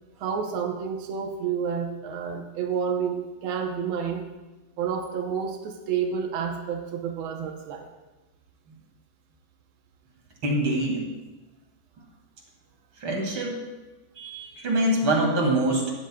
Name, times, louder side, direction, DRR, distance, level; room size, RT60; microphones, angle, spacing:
voice 1, 0.2-4.3 4.8-7.9, right 7 dB, 80° right, 3 dB, 1.1 m, -29 dB
voice 2, 10.4-11.0 13.0-13.6 14.2-15.9, right 1 dB, 45° right, 0 dB, 2.7 m, -24 dB
18.0 x 12.5 x 2.3 m, 1.1 s
omnidirectional pair, 3.6 m